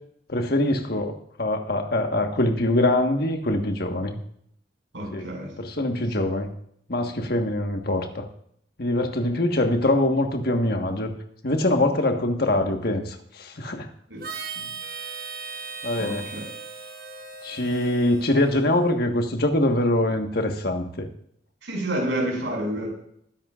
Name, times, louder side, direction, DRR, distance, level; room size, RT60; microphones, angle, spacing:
voice 1, 0.3-1.1 1.4-4.2 5.1-6.5 6.9-8.3 8.8-11.1 11.4-13.9 15.8-16.3 17.4-21.1, left 1 dB, 55° left, 4 dB, 1.5 m, -23 dB
voice 2, 4.9-5.5 14.1-14.2 14.5-14.7 16.0-16.4 21.6-22.9, right 1 dB, 75° right, -1 dB, 6.1 m, -29 dB
Harmonica, 14.2-18.9, right 5 dB, 50° right, 1.4 m, -38 dB
20.5 x 10.5 x 2.5 m, 0.69 s
head